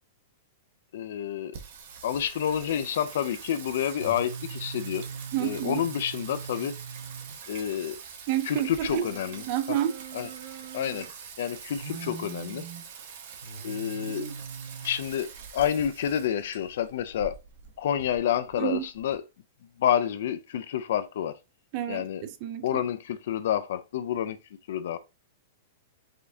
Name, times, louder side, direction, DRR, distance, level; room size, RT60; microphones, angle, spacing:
voice 1, 0.9-1.6 2.0-5.1 5.4-6.8 7.5-8.0 8.4-9.8 10.1-10.3 10.7-11.1 11.4-12.7 13.6-14.3 14.8-17.4 17.8-19.2 19.8-21.4 21.9-22.3 22.6-24.4 24.7-25.0, left 9 dB, 55° left, 0.4 m, -29 dB
Singing, 1.5-19.1, right 6 dB, 50° right, 0.9 m, -41 dB
voice 2, 5.3-5.8 8.3-9.1 9.5-9.9 14.1-14.3 18.6-18.8 21.7-22.7, right 12 dB, 30° right, 0.5 m, -29 dB
5.0 x 3.5 x 2.6 m
supercardioid pair, 175°, 0 cm